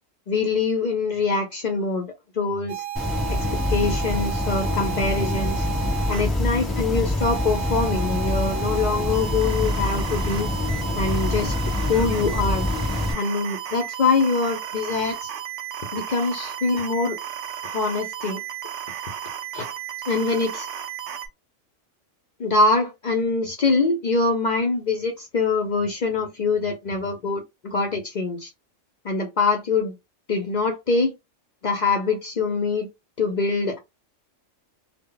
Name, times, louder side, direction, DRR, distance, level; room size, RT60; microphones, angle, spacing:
voice 1, 0.3-2.8 3.3-5.7 6.1-10.5 11.0-11.5 11.9-12.7 13.1-15.3 15.9-17.2 17.6-18.4 19.5-19.6 20.1-20.7 22.4-28.5 29.0-29.9 30.3-31.1 31.6-32.9 33.2-33.8, left 3 dB, 60° left, 0.4 m, -24 dB
sound 1, 2.7-6.2 7.2-21.3, right 11 dB, 70° right, 0.8 m, -33 dB
sound 2, 3.0-13.1, left 2 dB, ahead, 0.7 m, -25 dB
2.1 x 2.0 x 3.7 m
omnidirectional pair, 1.3 m